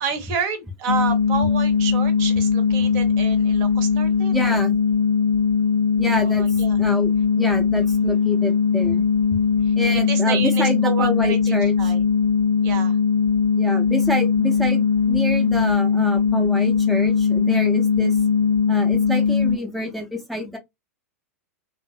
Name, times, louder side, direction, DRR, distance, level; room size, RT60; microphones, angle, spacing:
voice 1, 0.0-4.6 6.1-6.8 9.6-9.7 10.1-12.0 12.6-13.0, right 6 dB, 45° right, 0.8 m, -29 dB
sound 1, 0.9-19.6, left 6 dB, 65° left, 0.4 m, -20 dB
voice 2, 4.3-4.8 6.0-6.4 6.8-9.0 9.8-11.9 13.6-18.2 18.7-20.6, left 1 dB, ahead, 0.5 m, -27 dB
2.6 x 2.6 x 2.3 m
figure-of-eight pair, 95°, 8 cm